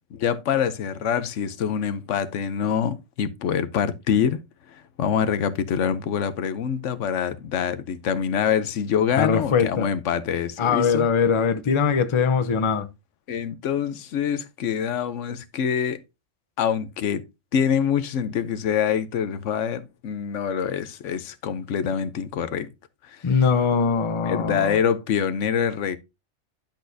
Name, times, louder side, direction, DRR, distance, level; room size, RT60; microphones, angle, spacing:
voice 1, 0.1-4.4 4.7-11.1 13.3-16.0 16.6-17.2 17.5-22.7 23.1-23.2 24.2-26.0, left 8 dB, 80° left, 1.0 m, -25 dB
voice 2, 9.2-9.9 10.6-12.9 23.2-24.8, left 6 dB, 30° left, 0.6 m, -21 dB
10.5 x 6.2 x 2.6 m
omnidirectional pair, 1.3 m